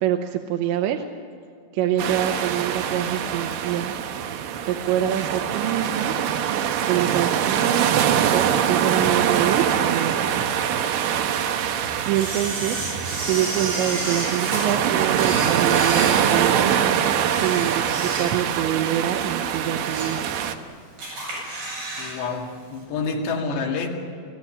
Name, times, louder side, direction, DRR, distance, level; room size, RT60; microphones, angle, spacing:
voice 1, 0.0-1.1 1.7-4.0 4.6-6.1 6.9-10.5 12.1-12.8 13.2-17.0 17.4-20.2, right 11 dB, 90° right, 3 dB, 3.2 m, -26 dB
sound 1, 2.0-20.6, right 9 dB, 70° right, 2.3 m, -23 dB
Camera, 12.1-14.6 15.1-16.7 17.2-18.6 18.9-19.1 19.6-20.2 20.6-20.7 21.0-22.2 22.4-22.5, right 2 dB, 55° right, 9.8 m, -31 dB
voice 2, 22.0-23.9, left 4 dB, 75° left, 1 dB, 4.4 m, -28 dB
26.5 x 16.0 x 8.6 m, 2.3 s
omnidirectional pair, 5.2 m